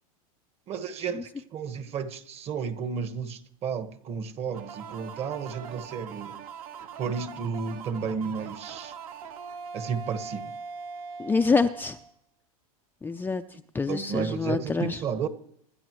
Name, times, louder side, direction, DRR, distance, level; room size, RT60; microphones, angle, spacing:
voice 1, 0.7-6.3 7.0-8.9 9.7-10.5 13.8-15.3, right 6 dB, 35° right, 1.5 m, -32 dB
sound 1, 4.5-12.1, right 6 dB, 75° right, 2.2 m, -41 dB
voice 2, 11.2-12.0 13.0-13.4 13.7-15.0, left 4 dB, 10° left, 0.5 m, -26 dB
26.0 x 12.0 x 3.1 m
hypercardioid pair, 115°, 19 cm